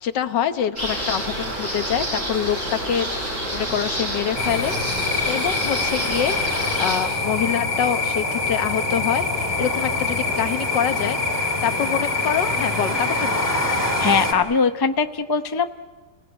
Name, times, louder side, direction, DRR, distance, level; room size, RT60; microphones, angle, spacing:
voice 1, 0.0-3.2 3.5-13.6, left 9 dB, 80° left, 10 dB, 1.7 m, -26 dB
sound 1, 0.8-7.0, equal, 45° right, 8.6 m, -28 dB
sound 2, 4.4-14.3, left 3 dB, 10° left, 3.0 m, -24 dB
voice 2, 14.0-15.7, left 5 dB, 40° left, 9 dB, 0.3 m, -21 dB
29.5 x 17.5 x 9.5 m, 1.4 s
omnidirectional pair, 1.9 m